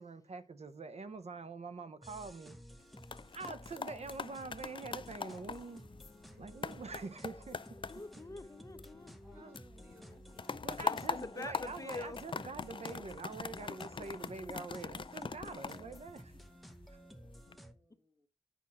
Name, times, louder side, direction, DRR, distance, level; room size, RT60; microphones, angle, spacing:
voice 1, 0.0-2.6 3.3-5.8 6.4-7.6 9.3-9.6 10.6-16.4, right 4 dB, 70° right, 0.8 m, -45 dB
sound 1, 2.0-17.7, equal, ahead, 0.9 m, -54 dB
sound 2, 2.8-9.3 9.6-16.7 17.2-17.6, left 5 dB, 45° left, 0.4 m, -43 dB
voice 2, 6.3-6.6 9.2-10.7 15.7-15.9 17.6-18.3, left 1 dB, 15° right, 2.0 m, -62 dB
voice 3, 7.9-10.0 10.8-12.2, left 2 dB, 30° left, 0.7 m, -46 dB
8.7 x 5.5 x 4.2 m
wide cardioid pair, 75°, 11 cm